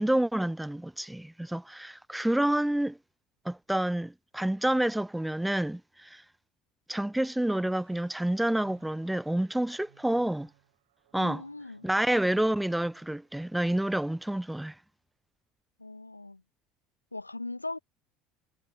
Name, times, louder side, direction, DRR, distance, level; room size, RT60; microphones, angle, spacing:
voice 1, 0.0-3.0 3.4-6.2 6.9-10.5 11.1-11.4 11.8-14.7, right 1 dB, 5° right, 0.6 m, -28 dB
sound 1, 7.7-13.4 13.7-14.0, right 15 dB, 65° right, 7.1 m, -65 dB
voice 2, 11.2-11.9 15.8-16.4 17.1-17.8, left 2 dB, 85° left, 1.5 m, -39 dB
figure-of-eight pair, 65°, 0 cm